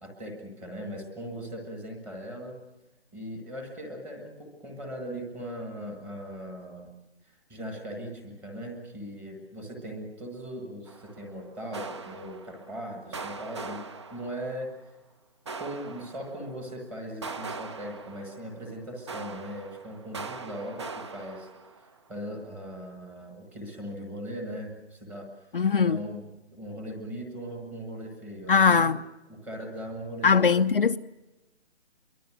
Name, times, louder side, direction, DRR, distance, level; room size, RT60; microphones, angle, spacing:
voice 1, 0.0-2.6 3.1-6.9 7.2-13.8 14.1-14.7 15.6-25.5 25.7-29.0 29.3-30.5, equal, 5° right, 1.4 m, -39 dB
sound 1, 10.9-11.3 11.7-12.8 13.1-14.7 15.5-16.6 17.2-18.7 19.1-22.0, right 4 dB, 25° right, 0.9 m, -41 dB
voice 2, 25.5-26.0 28.5-29.0 30.2-31.0, left 5 dB, 50° left, 0.8 m, -21 dB
27.0 x 23.0 x 6.1 m
hypercardioid pair, 170°, 35 cm